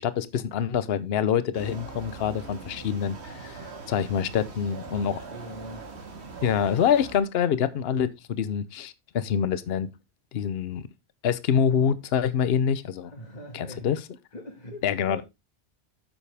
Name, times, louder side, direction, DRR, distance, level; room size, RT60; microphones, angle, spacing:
voice 1, 0.0-5.2 6.4-9.9 10.3-10.9 11.2-13.1 13.5-14.0 14.8-15.2, left 8 dB, 65° left, 1.0 m, -26 dB
sound 1, 1.5-7.2, right 4 dB, 80° right, 1.9 m, -41 dB
voice 2, 4.9-5.8 13.1-13.9 14.3-15.2, left 1 dB, 40° left, 1.7 m, -42 dB
9.8 x 7.3 x 3.4 m
omnidirectional pair, 1.1 m